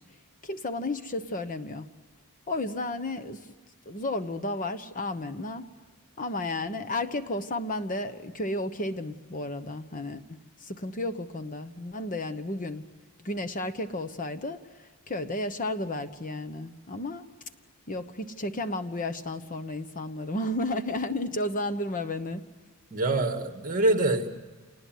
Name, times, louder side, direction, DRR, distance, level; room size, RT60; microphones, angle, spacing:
voice 1, 0.4-1.9 2.5-3.5 3.9-5.7 6.2-12.8 13.2-17.2 17.9-22.4, left 2 dB, 40° left, 10 dB, 1.1 m, -33 dB
voice 2, 22.9-24.3, right 2 dB, 40° right, 6 dB, 2.2 m, -25 dB
27.5 x 20.0 x 9.5 m, 1.4 s
head